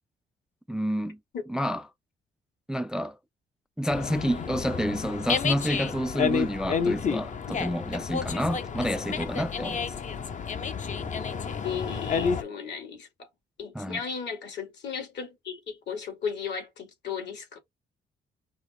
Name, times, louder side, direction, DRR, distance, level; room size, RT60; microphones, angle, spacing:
voice 1, 0.7-1.2 1.5-1.8 2.7-3.2 3.8-10.0 13.7-14.0, equal, 5° right, 0.3 m, -29 dB
Dog, 3.9-12.4, left 6 dB, 40° left, 0.6 m, -30 dB
voice 2, 11.6-13.3 13.6-17.6, left 6 dB, 65° left, 2.2 m, -35 dB
5.1 x 2.1 x 4.2 m
cardioid pair, 90°, 20 cm